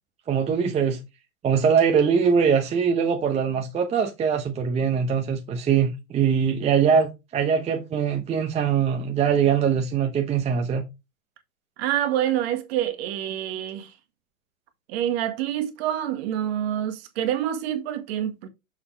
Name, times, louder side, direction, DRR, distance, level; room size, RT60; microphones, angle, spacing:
voice 1, 0.3-1.0 1.4-10.8, right 7 dB, 15° right, 0.9 m, -22 dB
voice 2, 11.8-13.9 14.9-18.5, right 11 dB, 45° right, 1.7 m, -27 dB
6.4 x 5.6 x 3.3 m
hypercardioid pair, 120°, 42 cm